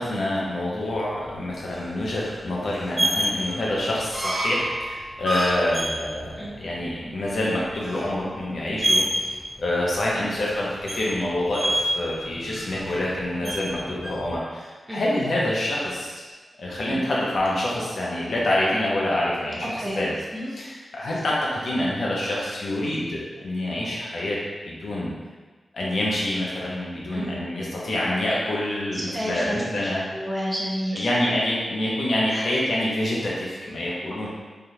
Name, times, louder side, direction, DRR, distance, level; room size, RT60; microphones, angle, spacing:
voice 1, 0.0-9.3 9.6-16.2 16.6-20.1 20.5-24.4 24.7-25.1 25.7-30.0 30.9-34.3, left 1 dB, 70° left, -5 dB, 0.7 m, -26 dB
sound 1, 0.9-14.3, right 1 dB, 30° right, 1.1 m, -29 dB
voice 2, 28.9-31.1 32.3-32.4, equal, 10° right, -6 dB, 0.6 m, -31 dB
3.3 x 2.4 x 2.8 m, 1.4 s
wide cardioid pair, 135°, 0 cm